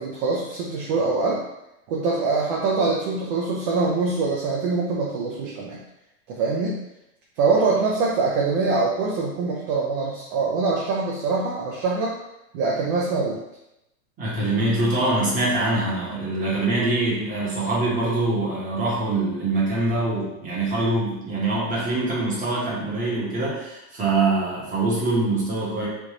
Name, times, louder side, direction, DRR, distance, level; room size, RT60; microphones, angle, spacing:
voice 1, 0.0-1.4 1.9-5.8 6.3-6.8 7.4-12.1 12.5-13.4, right 4 dB, 40° right, -3 dB, 0.6 m, -24 dB
voice 2, 14.2-25.9, right 2 dB, 20° right, -6 dB, 1.2 m, -24 dB
3.4 x 2.5 x 3.0 m, 0.88 s
hypercardioid pair, 125°, 45 cm